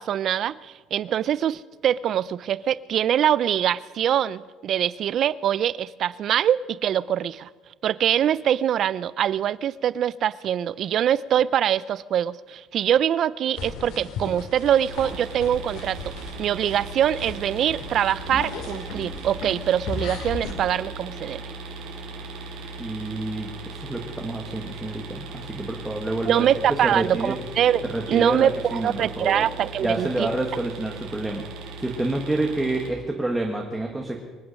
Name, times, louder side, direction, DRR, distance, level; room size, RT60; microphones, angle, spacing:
voice 1, 0.0-7.5 7.8-16.0 16.4-21.5 26.2-30.3, right 10 dB, 35° right, 20 dB, 0.4 m, -23 dB
sound 1, 13.6-20.5, left 4 dB, 60° left, 2.7 m, -36 dB
sound 2, 14.6-32.9, right 3 dB, 85° right, 3.4 m, -38 dB
voice 2, 22.8-26.4 26.8-27.4 27.8-29.5 29.8-31.4 31.8-34.2, right 2 dB, 5° right, 0 dB, 1.3 m, -28 dB
24.5 x 9.3 x 6.3 m, 1.4 s
cardioid pair, 175°, 0 cm